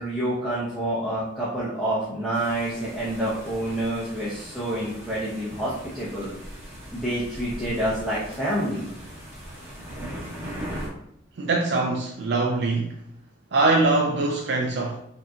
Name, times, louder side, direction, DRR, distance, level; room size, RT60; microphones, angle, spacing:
voice 1, 0.0-6.4 6.9-8.9, right 1 dB, ahead, 0.9 m, -28 dB
sound 1, 2.3-10.9, equal, 15° right, 1.2 m, -39 dB
voice 2, 11.4-12.9 13.5-15.0, right 3 dB, 60° right, 0.4 m, -23 dB
5.2 x 2.8 x 2.4 m
head